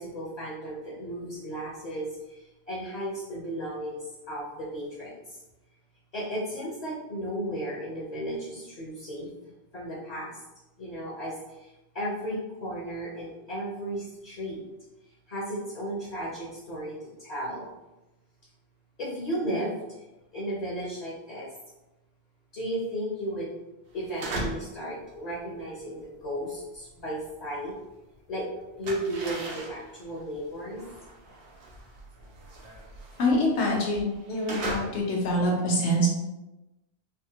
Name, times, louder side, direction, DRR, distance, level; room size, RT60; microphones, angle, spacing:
voice 1, 0.0-5.4 6.1-9.3 9.7-10.3 10.8-11.7 11.9-14.6 15.3-17.7 19.0-19.7 20.3-21.5 22.5-23.5 23.9-27.7 28.3-28.4 28.8-30.8, right 1 dB, 45° left, -5 dB, 0.7 m, -34 dB
sound 1, 23.9-24.8 25.1-28.0 28.3-35.5, right 1 dB, 65° right, 0.9 m, -39 dB
voice 2, 33.2-36.1, equal, 85° left, -2 dB, 1.1 m, -25 dB
3.4 x 2.1 x 2.8 m, 0.99 s
omnidirectional pair, 1.1 m